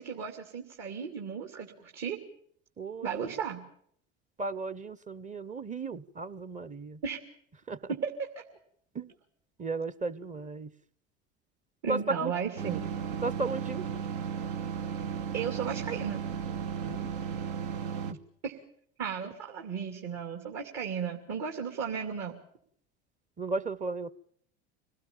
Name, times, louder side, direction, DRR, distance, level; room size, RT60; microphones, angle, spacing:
voice 1, 0.0-2.2 3.0-3.6 7.0-7.2 7.9-8.3 11.8-12.9 15.3-16.2 18.4-18.6 19.0-22.4, right 6 dB, 50° right, 2 dB, 2.8 m, -35 dB
voice 2, 2.8-3.3 4.4-7.0 7.7-7.9 8.9-9.1 9.6-10.7 11.9-12.3 13.2-13.9 16.8-17.1 18.1-18.2 23.4-24.1, right 3 dB, 20° right, 17 dB, 0.9 m, -35 dB
sound 1, 12.6-18.1, right 7 dB, 70° right, 1.4 m, -35 dB
26.0 x 18.0 x 7.3 m, 0.64 s
hypercardioid pair, 80°, 35 cm